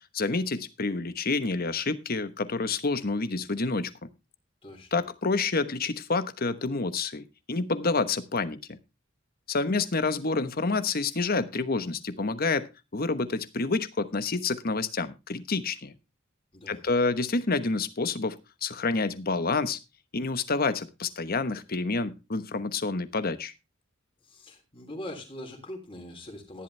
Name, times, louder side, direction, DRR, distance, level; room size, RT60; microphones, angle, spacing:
voice 1, 0.1-3.9 4.9-8.8 9.5-15.9 16.7-19.8 20.1-23.5, left 3 dB, 50° left, 1.1 m, -28 dB
voice 2, 4.6-5.0 16.5-16.8 24.2-26.6, left 1 dB, 25° left, 3.3 m, -42 dB
14.0 x 11.0 x 3.3 m
head